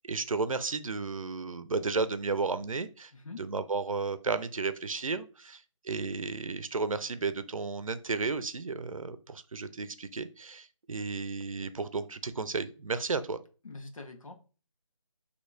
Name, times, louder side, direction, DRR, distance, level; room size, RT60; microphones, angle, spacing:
voice 1, 0.0-3.1 3.4-13.4, right 4 dB, 85° right, 12 dB, 0.6 m, -33 dB
voice 2, 3.1-3.4 13.6-14.3, left 3 dB, 85° left, 4 dB, 1.2 m, -44 dB
6.3 x 2.9 x 2.7 m, 0.36 s
figure-of-eight pair, 175°, 17 cm